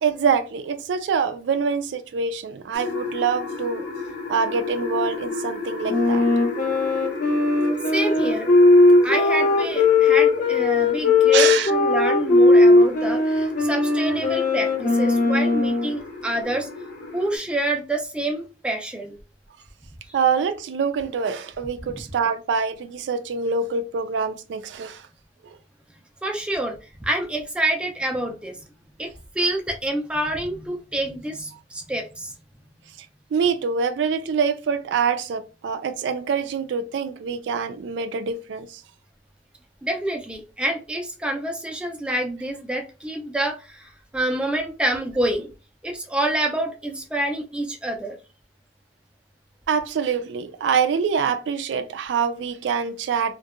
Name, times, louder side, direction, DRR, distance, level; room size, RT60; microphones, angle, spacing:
voice 1, 0.0-3.9 4.3-6.3 11.3-11.7 20.1-25.1 25.4-25.6 33.3-38.8 49.7-53.3, right 6 dB, 90° right, 0.3 m, -25 dB
sound 1, 2.7-17.4, left 3 dB, 80° left, 0.8 m, -33 dB
Wind instrument woodwind instrument, 5.9-15.9, left 2 dB, 45° left, 0.6 m, -18 dB
voice 2, 7.9-8.5 9.0-16.7 17.1-19.2 20.1-20.2 26.2-28.6 29.0-32.3 39.8-45.5 45.8-48.2, right 1 dB, 5° right, 0.3 m, -27 dB
2.6 x 2.1 x 2.4 m
head